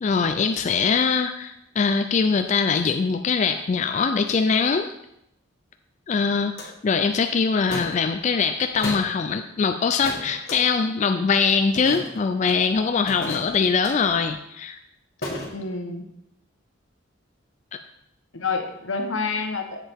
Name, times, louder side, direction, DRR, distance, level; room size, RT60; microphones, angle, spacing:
voice 1, 0.0-4.9 6.1-14.8, left 5 dB, 35° left, 7 dB, 0.3 m, -22 dB
sound 1, 6.6-6.7 7.7-8.0 8.8-9.1 10.0-10.6 11.7-12.3 13.1-13.9 15.2-15.5, left 1 dB, 55° left, 1.8 m, -33 dB
voice 2, 15.5-16.1 18.3-19.9, left 4 dB, 85° left, 5 dB, 1.1 m, -28 dB
7.5 x 7.1 x 3.5 m, 0.80 s
head